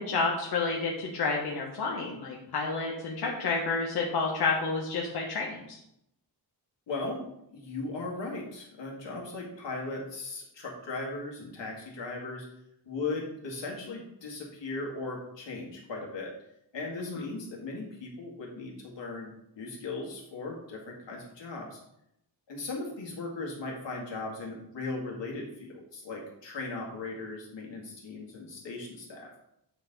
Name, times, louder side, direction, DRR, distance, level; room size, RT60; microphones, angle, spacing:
voice 1, 0.0-5.8 17.1-17.2, left 4 dB, 60° left, -1 dB, 1.0 m, -30 dB
voice 2, 6.9-12.5 12.9-16.3 16.7-21.8 22.5-29.3, left 3 dB, 85° left, -2 dB, 2.0 m, -38 dB
8.1 x 4.1 x 4.0 m, 0.78 s
wide cardioid pair, 165°, 42 cm